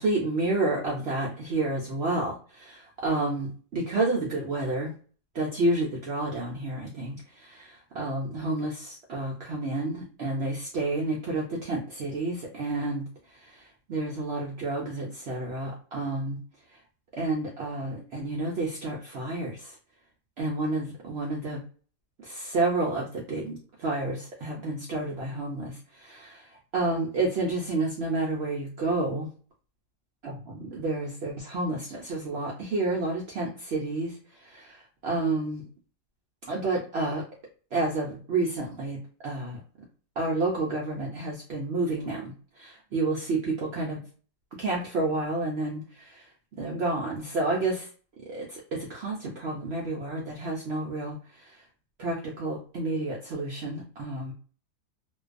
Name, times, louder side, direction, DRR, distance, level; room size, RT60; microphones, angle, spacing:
voice 1, 0.0-4.9 5.3-13.0 13.3-16.4 17.2-19.8 20.4-21.6 22.2-29.3 30.2-35.6 36.5-37.2 37.7-39.6 40.2-44.0 44.6-46.3 46.6-47.9 48.3-51.6 52.0-54.3, right 2 dB, 75° right, -2 dB, 0.6 m, -30 dB
2.5 x 2.3 x 2.4 m, 0.41 s
omnidirectional pair, 1.7 m